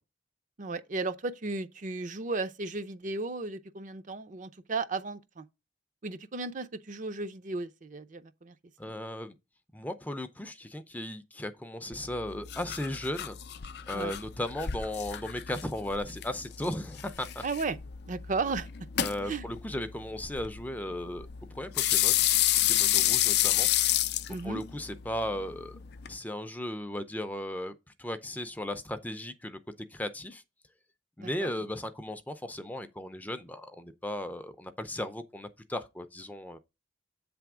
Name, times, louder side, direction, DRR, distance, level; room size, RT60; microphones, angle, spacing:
voice 1, 0.6-5.4 6.0-8.5 8.9-9.0 13.9-14.1 17.4-17.8 18.1-18.7 19.3-19.5 24.3-24.6 31.2-31.5, right 3 dB, 45° right, 0.5 m, -35 dB
voice 2, 8.8-9.3 9.7-13.4 13.9-17.4 19.0-22.3 22.7-23.7 24.3-25.8 26.1-27.7 28.0-29.6 29.9-30.4 31.2-36.6, left 1 dB, 10° left, 0.5 m, -36 dB
sound 1, 11.9-26.2, left 13 dB, 60° left, 0.5 m, -30 dB
8.3 x 3.4 x 6.0 m
head